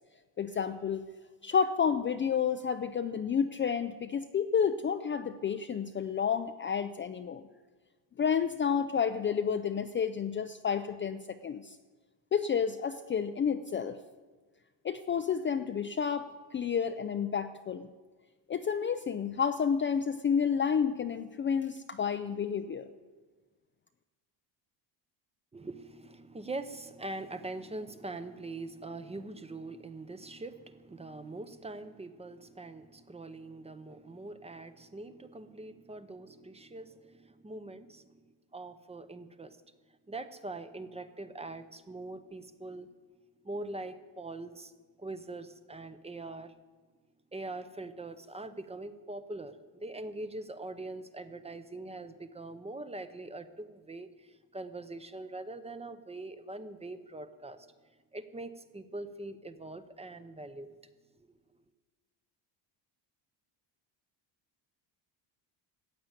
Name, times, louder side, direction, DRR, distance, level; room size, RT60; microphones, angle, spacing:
voice 1, 0.4-1.0 1.4-7.4 8.2-11.8 12.3-14.0 14.8-17.9 18.5-22.9, left 7 dB, 25° left, 8 dB, 0.4 m, -30 dB
voice 2, 25.5-38.2 38.5-39.6 40.1-42.9 43.4-44.7 45.0-46.5 47.3-57.7 58.1-60.7 61.2-61.3, right 2 dB, 15° right, 11 dB, 0.7 m, -43 dB
14.5 x 8.5 x 9.0 m, 1.3 s
cardioid pair, 140°, 47 cm